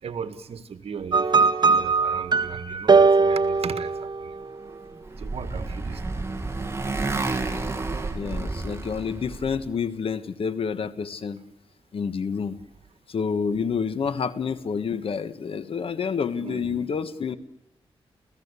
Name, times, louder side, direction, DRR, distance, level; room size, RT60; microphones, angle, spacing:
voice 1, 0.0-4.3 5.2-6.2 13.5-13.6 16.4-16.9, right 6 dB, 75° right, 10 dB, 1.8 m, -37 dB
sound 1, 1.1-4.5, right 4 dB, 45° right, 1.7 m, -20 dB
Motorcycle, 4.7-9.7, right 3 dB, 25° right, 2.4 m, -30 dB
voice 2, 8.1-11.4 11.9-12.6 13.1-17.4, left 6 dB, 65° left, 13 dB, 1.4 m, -28 dB
28.5 x 16.0 x 8.3 m, 0.90 s
wide cardioid pair, 90°, 10 cm